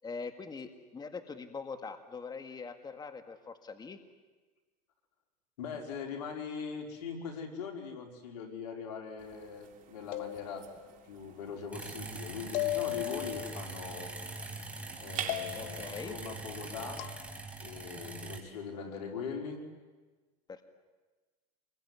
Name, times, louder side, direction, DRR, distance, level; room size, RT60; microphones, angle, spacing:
voice 1, 0.0-4.0 15.5-16.2 18.0-18.1 20.5-20.6, left 4 dB, 20° left, 8 dB, 1.9 m, -43 dB
voice 2, 5.6-10.7 11.0-14.1 15.0-17.1 17.6-19.6, left 6 dB, 80° left, 3 dB, 4.9 m, -41 dB
sound 1, 9.2-16.9, right 8 dB, 40° right, 3.0 m, -48 dB
sound 2, 10.1-10.9 12.5-13.5 15.3-15.9 17.0-17.2, left 18 dB, 60° left, 0.8 m, -36 dB
sound 3, 11.7-18.4, right 2 dB, 5° right, 4.5 m, -43 dB
27.5 x 22.0 x 9.7 m, 1.3 s
supercardioid pair, 105°, 20 cm